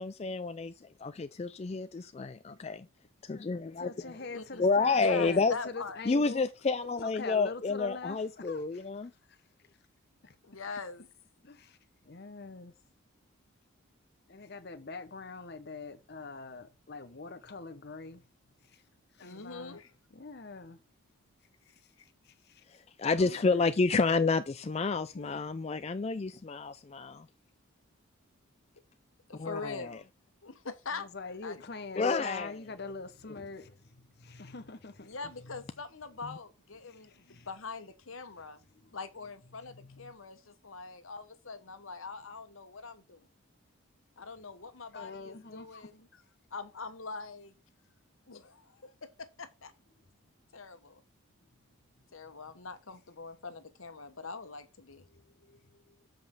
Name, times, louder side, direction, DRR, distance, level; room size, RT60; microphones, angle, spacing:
voice 1, 0.0-2.9 3.2-3.9 4.6-5.5 6.1-9.1 22.7-27.3 29.4-30.0 32.0-32.5, left 4 dB, 30° left, 0.3 m, -30 dB
voice 2, 3.8-6.5 7.0-8.8 9.3-9.4 10.2-10.3 11.4-11.8 12.0-12.7 14.3-18.2 18.6-18.8 19.1-19.8 20.1-20.8 21.8-21.9 22.2-22.6 23.2-23.7 30.9-35.6 36.8-37.5 38.7-39.0 39.7-40.1 44.9-45.9 55.1-55.9, left 4 dB, 50° left, 0.9 m, -44 dB
voice 3, 4.3-4.6 4.9-6.0 10.4-11.1 19.2-19.9 22.0-22.1 23.1-23.6 25.1-25.3 29.3-30.0 30.4-31.1 31.4-31.6 35.0-38.6 38.9-43.3 44.2-46.1 46.5-47.5 48.3-49.7 50.5-51.0 52.1-55.1, left 4 dB, 75° left, 1.3 m, -43 dB
7.7 x 5.2 x 6.0 m
head